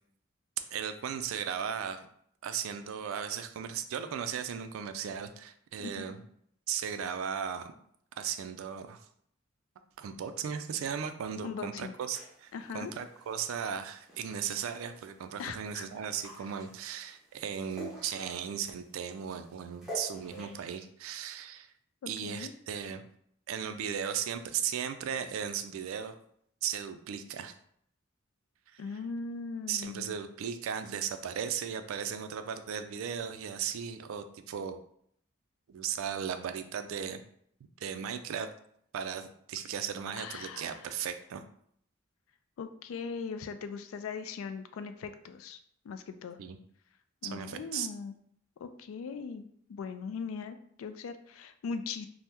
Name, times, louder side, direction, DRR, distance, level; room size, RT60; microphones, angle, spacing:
voice 1, 0.7-2.1 2.4-6.2 6.7-7.7 8.2-9.1 10.0-21.7 22.1-23.0 23.5-26.2 26.6-27.5 28.7-28.8 29.7-34.8 35.7-37.2 37.8-38.5 38.9-41.4 46.4-46.6 47.2-47.9, right 8 dB, 80° right, 9 dB, 0.3 m, -36 dB
voice 2, 5.8-6.1 11.4-11.9 12.5-12.9 15.4-15.9 22.0-22.5 28.8-30.2 40.2-40.9 42.6-45.6 45.8-46.4 47.2-48.1 48.6-52.1, left 5 dB, 75° left, 10 dB, 0.3 m, -40 dB
sound 1, 12.1-20.8, equal, ahead, 0.7 m, -49 dB
2.8 x 2.1 x 3.4 m, 0.68 s
head